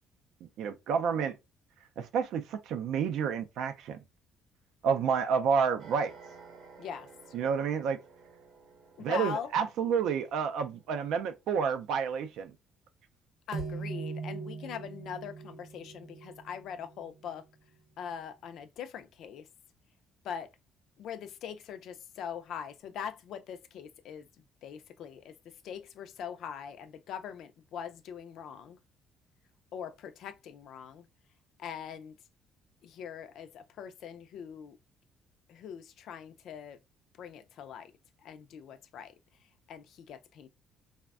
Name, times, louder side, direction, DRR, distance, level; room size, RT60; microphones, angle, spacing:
voice 1, 0.4-1.4 2.0-4.0 4.8-6.1 7.3-8.0 9.0-12.5, right 6 dB, 70° right, 0.4 m, -30 dB
sound 1, 5.8-10.1 13.5-17.4, right 5 dB, 45° right, 0.7 m, -44 dB
voice 2, 6.8-7.1 9.0-9.5 13.5-17.4 18.0-19.5 20.2-20.5 21.0-24.3 24.6-28.8 29.7-31.1 31.6-32.2 32.8-34.8 35.5-36.8 37.2-37.9 38.2-39.1 39.7-40.5, left 8 dB, 60° left, 0.4 m, -42 dB
3.3 x 2.1 x 2.3 m
cardioid pair, 160°, 0 cm